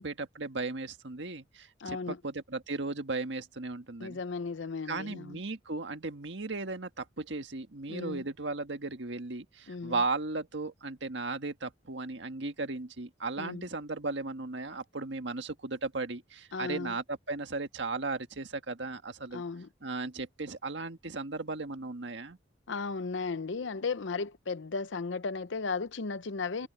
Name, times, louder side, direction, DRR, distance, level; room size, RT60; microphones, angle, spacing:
voice 1, 0.0-4.2 4.8-19.4 19.8-22.4, right 3 dB, 75° right, 1.6 m, -36 dB
voice 2, 1.8-2.2 4.0-5.4 7.9-8.2 9.7-10.0 13.4-13.7 16.5-16.9 19.3-19.7 22.7-26.7, left 4 dB, 80° left, 0.7 m, -35 dB
head